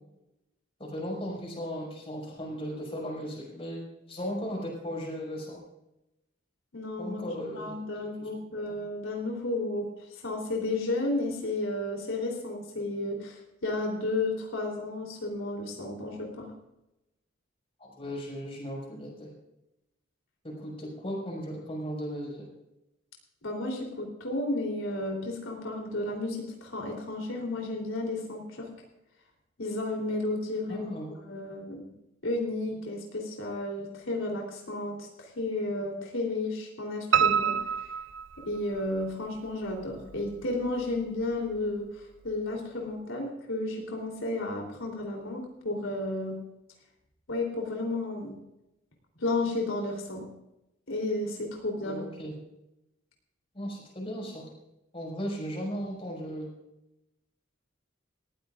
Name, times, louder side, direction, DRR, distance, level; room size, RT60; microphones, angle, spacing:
voice 1, 0.8-5.6 7.0-8.3 17.8-19.3 20.4-22.5 30.7-31.1 51.8-52.3 53.5-54.5 54.9-56.5, equal, 30° left, -3 dB, 5.9 m, -36 dB
voice 2, 6.7-7.2 7.5-16.5 23.4-28.7 29.6-30.9 31.3-31.9 32.2-37.6 38.5-46.4 47.3-48.4 49.2-50.3 50.9-52.0, left 2 dB, 85° left, 0 dB, 3.5 m, -32 dB
Piano, 37.1-39.0 39.5-40.3 40.7-40.8 41.2-41.3 41.6-41.7, right 8 dB, 70° right, 0.7 m, -27 dB
19.0 x 15.0 x 2.5 m, 0.89 s
head